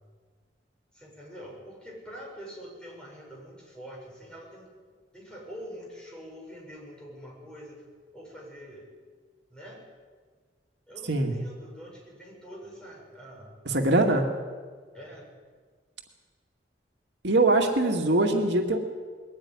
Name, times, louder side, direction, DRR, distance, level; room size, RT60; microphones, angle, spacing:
voice 1, 0.9-4.7 5.1-7.8 8.1-8.9 9.5-9.8 10.9-13.8 14.9-15.3 17.8-18.2, equal, 5° left, -4 dB, 7.5 m, -45 dB
voice 2, 11.1-11.4 13.7-14.3 17.2-18.8, right 2 dB, 80° right, 3 dB, 2.2 m, -22 dB
21.5 x 14.5 x 9.9 m, 1.5 s
head